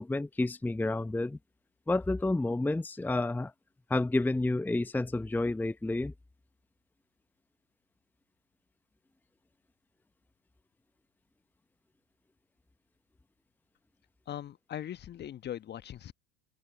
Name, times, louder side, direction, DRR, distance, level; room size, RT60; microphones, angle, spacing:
voice 1, 0.0-1.4 1.9-3.5 3.9-6.1, left 2 dB, 5° left, 0.9 m, -30 dB
voice 2, 14.3-16.1, left 11 dB, 30° left, 1.3 m, -40 dB
open air
figure-of-eight pair, 75°, 32 cm